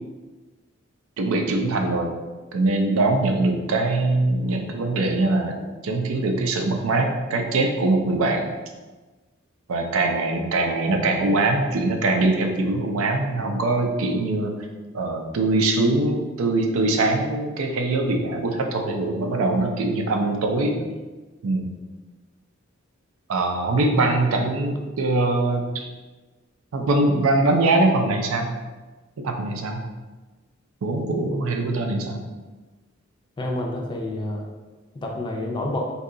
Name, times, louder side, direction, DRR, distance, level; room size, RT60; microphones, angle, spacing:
voice 1, 1.2-2.1 2.5-5.6 5.8-8.5 9.7-14.5 14.9-20.7 21.4-21.7 23.3-25.9 26.7-28.5 29.2-29.8 30.8-32.2, right 2 dB, 90° right, 4 dB, 0.4 m, -22 dB
voice 2, 33.4-34.4 34.9-35.9, left 1 dB, 25° left, -1 dB, 0.4 m, -28 dB
2.7 x 2.3 x 3.7 m, 1.3 s
head